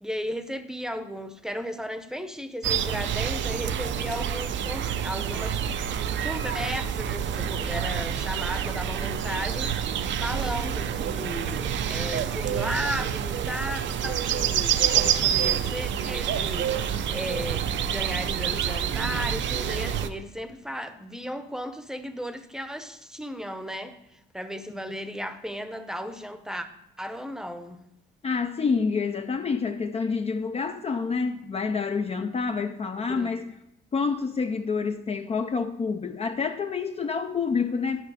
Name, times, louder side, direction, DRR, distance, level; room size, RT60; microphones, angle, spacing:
voice 1, 0.0-5.7 6.2-26.7 27.0-27.8 33.1-33.4, equal, 5° right, 0.8 m, -35 dB
sound 1, 2.6-20.1, right 9 dB, 70° right, 0.6 m, -27 dB
voice 2, 28.2-33.5 33.9-38.0, left 5 dB, 30° left, 0.5 m, -28 dB
11.0 x 5.6 x 4.9 m
cardioid pair, 90°, 20 cm